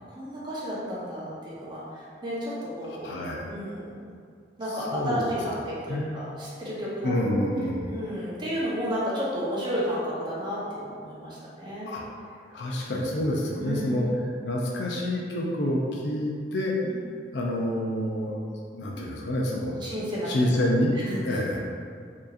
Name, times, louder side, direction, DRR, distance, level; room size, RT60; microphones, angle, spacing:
voice 1, 0.1-3.1 3.5-3.9 4.6-7.2 7.9-11.9 13.6-14.0 16.8-17.0 19.8-20.3 20.9-21.4, equal, 25° right, -8 dB, 0.9 m, -32 dB
voice 2, 3.0-3.5 4.9-5.2 5.9-6.1 7.0-7.9 11.9-12.0 12.5-14.1 14.4-16.8 17.3-18.4 18.7-19.8 20.3-21.0 21.2-21.6, left 1 dB, 80° left, -2 dB, 0.5 m, -27 dB
4.5 x 2.9 x 2.5 m, 2.3 s
head